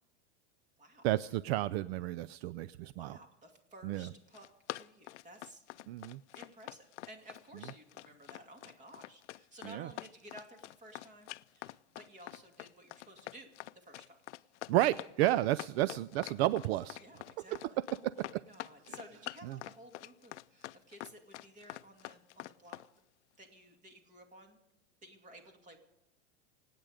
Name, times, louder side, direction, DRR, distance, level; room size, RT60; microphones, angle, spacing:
voice 1, 1.0-3.2 3.8-4.1 5.9-6.2 9.6-9.9 14.7-17.0 18.0-18.4 18.9-19.0 19.4-19.6, right 15 dB, 65° right, 17 dB, 0.5 m, -32 dB
voice 2, 2.8-4.5 4.7-5.6 6.3-14.2 17.0-22.8 23.4-24.6 25.0-25.8, right 1 dB, 20° right, 5 dB, 2.5 m, -55 dB
Run, 4.1-22.9, left 17 dB, 90° left, 0.5 m, -46 dB
26.0 x 9.1 x 5.1 m, 0.87 s
supercardioid pair, 130°, 34 cm